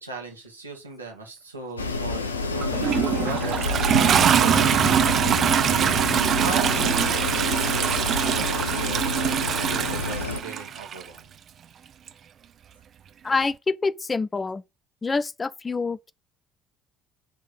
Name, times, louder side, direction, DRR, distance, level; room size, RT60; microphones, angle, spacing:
voice 1, 0.0-5.1 6.4-11.2, right 3 dB, 85° right, 1.9 m, -38 dB
Wind, 1.8-10.4, left 3 dB, 80° left, 0.7 m, -29 dB
Toilet flush, 2.6-11.0 12.1-12.2, right 8 dB, 45° right, 0.8 m, -23 dB
voice 2, 13.2-14.6 15.0-16.1, left 4 dB, 25° left, 0.5 m, -26 dB
7.2 x 3.7 x 6.0 m
figure-of-eight pair, 55°, 0 cm